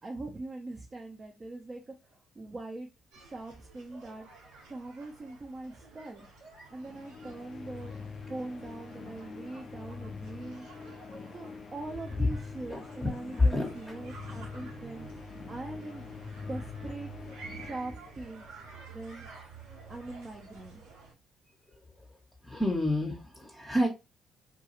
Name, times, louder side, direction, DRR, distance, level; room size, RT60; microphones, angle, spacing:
voice 1, 0.0-2.9 3.2-4.3 4.7-6.3 6.7-7.9 8.3-10.7 11.3-15.1 15.5-16.1 16.5-17.1 17.6-18.5 18.9-19.3 19.9-20.8, right 2 dB, 35° right, 1 dB, 0.6 m, -42 dB
sound 1, 3.1-21.1, right 3 dB, 80° right, 1.0 m, -50 dB
sound 2, 6.7-18.6, left 5 dB, 45° left, 0.3 m, -45 dB
voice 2, 12.7-13.1 13.4-13.7 22.4-23.9, left 1 dB, 15° left, -1 dB, 0.8 m, -28 dB
2.3 x 2.3 x 2.9 m, 0.25 s
hypercardioid pair, 55°, 0 cm